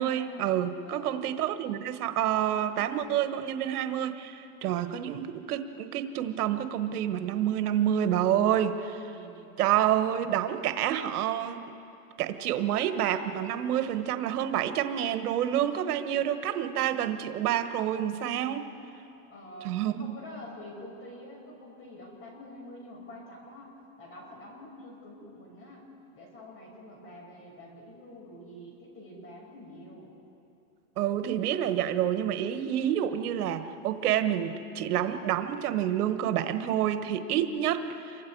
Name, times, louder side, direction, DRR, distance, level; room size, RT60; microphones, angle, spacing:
voice 1, 0.0-9.1 9.6-11.6 12.2-18.7 19.6-20.1 31.0-38.3, right 10 dB, 85° right, 9 dB, 1.4 m, -28 dB
voice 2, 0.8-1.2 9.1-9.5 19.2-23.7 24.0-25.8 26.1-30.1, left 1 dB, 30° left, -1 dB, 6.3 m, -47 dB
28.0 x 24.0 x 4.7 m, 2.7 s
supercardioid pair, 150°, 44 cm